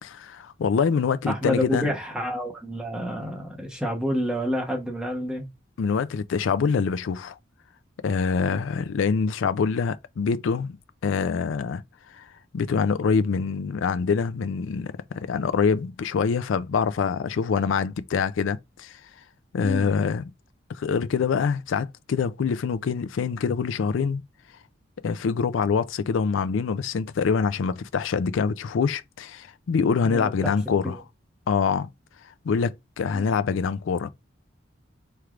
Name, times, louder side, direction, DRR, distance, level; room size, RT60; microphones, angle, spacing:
voice 1, 0.0-1.9 5.8-7.4 8.0-10.7 11.0-11.8 12.1-12.2 12.5-19.0 19.5-20.2 20.7-24.2 25.0-30.9 31.5-31.9 32.4-34.1, left 5 dB, 80° left, 0.4 m, -25 dB
voice 2, 1.2-5.5 8.4-8.6 19.6-19.9 30.0-30.5 30.8-31.0, equal, 5° right, 0.9 m, -29 dB
4.5 x 3.2 x 2.4 m
head